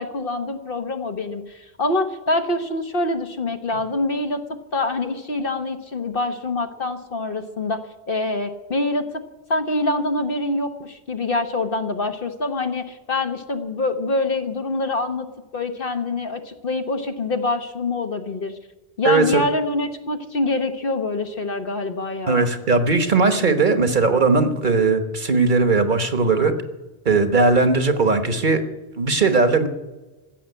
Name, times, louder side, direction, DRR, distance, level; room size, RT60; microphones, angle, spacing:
voice 1, 0.0-4.4 4.7-7.8 8.1-9.1 9.5-15.3 15.5-18.5 19.0-22.5, left 2 dB, 55° left, 7 dB, 1.4 m, -25 dB
voice 2, 19.0-19.4 22.3-26.5 27.0-28.6 29.0-29.7, right 3 dB, 50° right, 8 dB, 1.3 m, -18 dB
15.0 x 7.5 x 9.4 m, 1.2 s
omnidirectional pair, 1.1 m